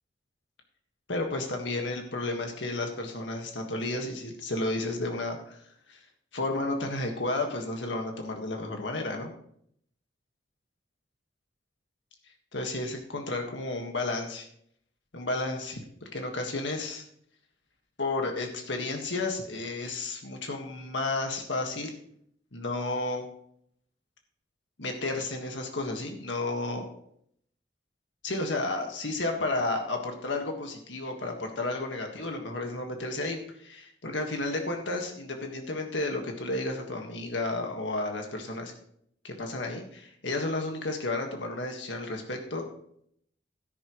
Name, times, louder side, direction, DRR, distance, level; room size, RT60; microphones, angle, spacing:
voice 1, 1.1-5.6 5.9-6.0 6.3-9.3 12.5-14.5 15.1-15.8 16.1-17.0 18.0-21.9 22.5-23.3 24.8-26.9 28.2-38.7 39.2-42.6, left 2 dB, 80° left, 3 dB, 1.7 m, -32 dB
13.0 x 11.0 x 3.2 m, 0.68 s
head